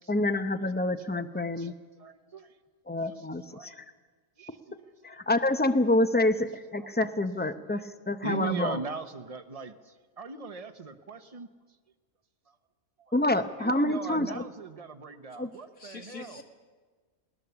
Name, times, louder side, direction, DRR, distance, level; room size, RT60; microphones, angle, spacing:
voice 1, 0.1-1.7 2.9-3.8 5.0-8.8 13.1-14.4 15.4-15.5, left 1 dB, 10° left, 9 dB, 0.5 m, -27 dB
voice 2, 1.6-2.5 3.2-3.3 3.5-3.8 4.4-4.7 6.8-6.9 8.2-11.5 12.5-12.6 13.0-13.1 13.6-16.4, right 4 dB, 30° right, 8 dB, 0.9 m, -39 dB
voice 3, 15.5-16.4, left 4 dB, 85° left, 3 dB, 2.5 m, -45 dB
20.5 x 18.5 x 7.0 m, 1.4 s
omnidirectional pair, 1.4 m